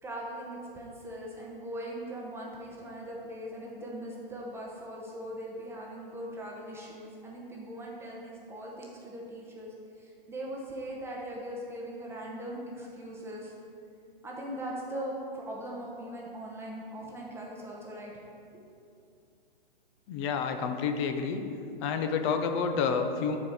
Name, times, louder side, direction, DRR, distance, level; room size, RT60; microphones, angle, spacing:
voice 1, 0.0-13.5 14.2-18.2 18.5-18.6, right 1 dB, 10° right, -3 dB, 0.9 m, -40 dB
voice 2, 20.1-21.4 21.8-23.4, left 6 dB, 30° left, 6 dB, 0.6 m, -29 dB
9.7 x 4.5 x 4.9 m, 2.5 s
hypercardioid pair, 135°, 29 cm